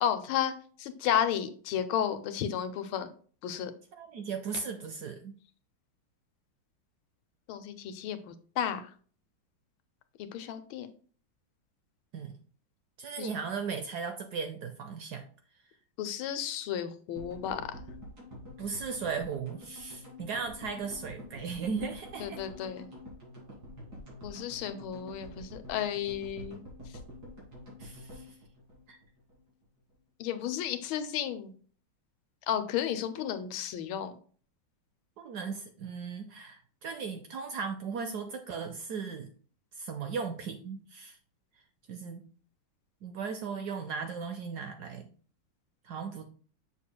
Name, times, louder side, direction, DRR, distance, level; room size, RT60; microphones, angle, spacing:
voice 1, 0.0-3.1 3.4-3.7 7.5-8.9 10.2-10.9 13.2-13.3 16.0-17.6 22.2-22.9 24.2-26.6 26.9-27.0 30.2-31.5 32.5-34.1, left 9 dB, 90° left, 10 dB, 1.5 m, -33 dB
voice 2, 3.9-5.3 12.1-12.4 13.0-15.2 18.6-22.4 27.8-28.3 28.9-29.0 35.2-39.3 39.8-41.2 41.9-42.3 43.0-45.1 45.8-46.2, right 5 dB, 70° right, 7 dB, 0.9 m, -37 dB
sound 1, 17.2-29.4 29.6-29.7 29.9-30.0, left 1 dB, 50° right, 2.6 m, -47 dB
6.9 x 6.7 x 2.2 m, 0.43 s
omnidirectional pair, 2.2 m